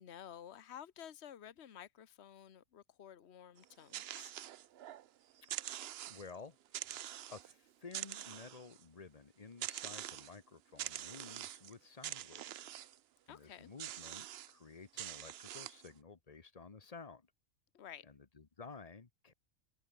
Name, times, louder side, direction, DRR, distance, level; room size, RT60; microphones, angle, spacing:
voice 1, 0.0-4.3 13.3-13.7 17.7-18.1, left 9 dB, 55° left, 1.3 m, -52 dB
sound 1, 3.6-5.1 5.4-6.4 6.7-7.5 7.9-8.8 9.6-10.4 10.8-11.7 12.0-13.0 13.8-14.5 15.0-15.9, right 12 dB, 60° right, 0.7 m, -45 dB
voice 2, 6.1-6.9 7.3-12.7 13.3-17.3 18.1-19.3, left 4 dB, 30° left, 1.2 m, -53 dB
omnidirectional pair, 1.4 m